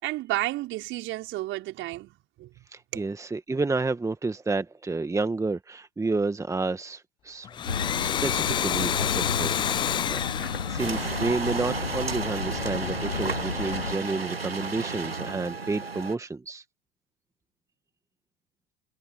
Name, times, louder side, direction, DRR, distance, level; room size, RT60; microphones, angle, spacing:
voice 1, 0.0-2.5 2.9-3.1, right 17 dB, 40° right, 5.1 m, -32 dB
voice 2, 2.7-7.5 8.0-10.2 10.7-16.6, right 3 dB, 10° right, 2.0 m, -30 dB
Domestic sounds home sounds, 7.4-11.9, left 9 dB, 15° left, 0.4 m, -29 dB
sound 1, 7.6-13.9, left 5 dB, 80° left, 2.3 m, -33 dB
sound 2, 10.8-16.2, right 4 dB, 85° right, 1.4 m, -33 dB
figure-of-eight pair, 80°, 29 cm